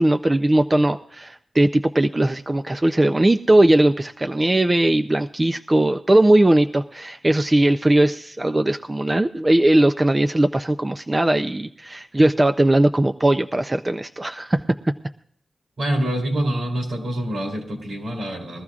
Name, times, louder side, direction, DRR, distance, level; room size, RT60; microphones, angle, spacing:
voice 1, 0.0-14.6, right 1 dB, 20° right, 7 dB, 0.5 m, -19 dB
voice 2, 15.8-18.6, right 1 dB, 70° right, 2 dB, 3.7 m, -26 dB
21.5 x 14.0 x 2.4 m, 0.67 s
wide cardioid pair, 90°, 0 cm